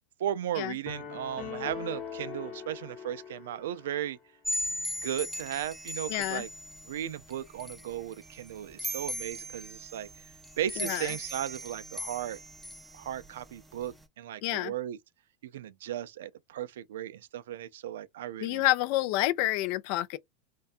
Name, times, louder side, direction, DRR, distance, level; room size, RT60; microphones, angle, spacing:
voice 1, 0.2-4.2 5.0-6.5 6.9-12.4 12.9-15.0 15.4-18.6, right 11 dB, 85° right, 0.3 m, -36 dB
sound 1, 0.9-4.1, left 7 dB, 35° left, 0.9 m, -41 dB
sound 2, 4.4-14.0, equal, 5° right, 0.5 m, -39 dB
voice 2, 6.1-6.4 10.8-11.1 14.4-14.7 18.4-20.2, left 16 dB, 60° left, 0.3 m, -28 dB
2.6 x 2.2 x 2.4 m
supercardioid pair, 125°, 0 cm